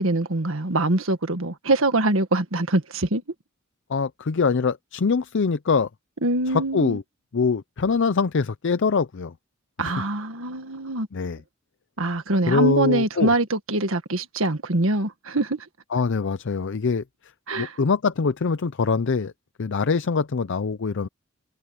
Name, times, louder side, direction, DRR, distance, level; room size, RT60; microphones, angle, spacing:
voice 1, 0.0-3.2 6.2-7.0 9.8-11.1 12.0-15.7 17.5-17.7, right 2 dB, 75° right, 1.8 m, -24 dB
voice 2, 3.9-5.9 6.5-7.0 7.3-9.3 9.8-9.9 11.1-11.4 12.5-13.3 15.9-17.0 17.6-19.3 19.6-21.1, left 5 dB, 60° left, 0.6 m, -23 dB
head